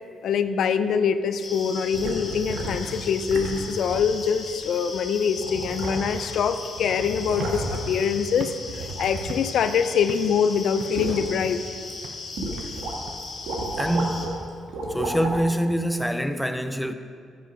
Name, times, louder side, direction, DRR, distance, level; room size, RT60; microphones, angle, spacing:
voice 1, 0.2-11.6, left 7 dB, 70° left, 0.4 m, -24 dB
sound 1, 1.4-14.3, left 3 dB, 40° left, 1.8 m, -38 dB
sound 2, 1.9-2.9 3.3-3.6 3.9-4.1 4.9-5.0 5.4-6.3 6.6-8.0 8.7-10.2 10.5-11.3 11.8-11.9 12.4-12.9 13.2-14.3 14.7-15.4 16.1-16.2, right 2 dB, 80° right, 1.6 m, -32 dB
sound 3, 7.3-9.8 10.1-10.4 10.8-11.7 12.0-12.3 12.6-15.7, right 4 dB, 60° right, 0.7 m, -42 dB
voice 2, 13.8-14.4 14.9-16.9, equal, ahead, 0.6 m, -25 dB
10.0 x 7.5 x 5.2 m
cardioid pair, 90°, 0 cm